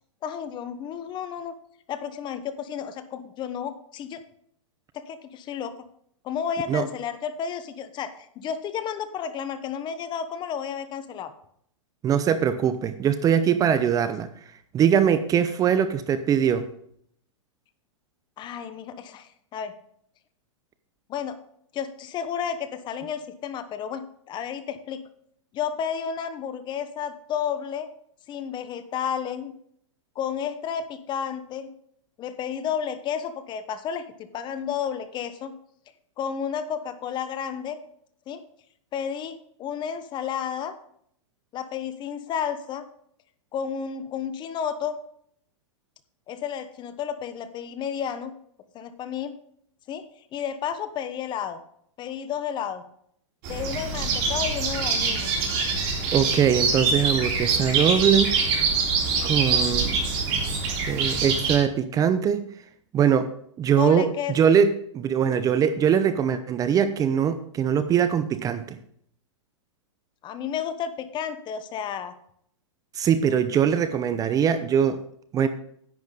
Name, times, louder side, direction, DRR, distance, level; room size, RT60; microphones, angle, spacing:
voice 1, 0.2-1.5 1.9-4.2 4.9-5.9 6.2-11.3 18.4-19.7 21.1-21.4 21.7-25.0 25.5-27.9 28.3-29.5 30.1-31.7 32.2-35.5 36.2-37.8 38.3-38.4 38.9-40.7 41.5-42.8 43.5-45.0 46.3-48.3 48.7-49.3 49.9-50.0 50.3-51.6 52.0-52.8 53.5-55.3 63.8-64.4 70.2-72.1, left 8 dB, 30° left, 12 dB, 1.0 m, -32 dB
voice 2, 12.0-14.3 14.7-16.7 56.1-58.4 59.2-60.0 60.9-62.5 62.9-63.3 63.6-64.1 64.3-68.8 72.9-75.0 75.3-75.5, right 8 dB, 20° right, 12 dB, 0.7 m, -22 dB
sound 1, 53.4-61.6, right 4 dB, 50° right, 3.6 m, -24 dB
10.5 x 9.3 x 4.0 m, 0.67 s
hypercardioid pair, 120°, 16 cm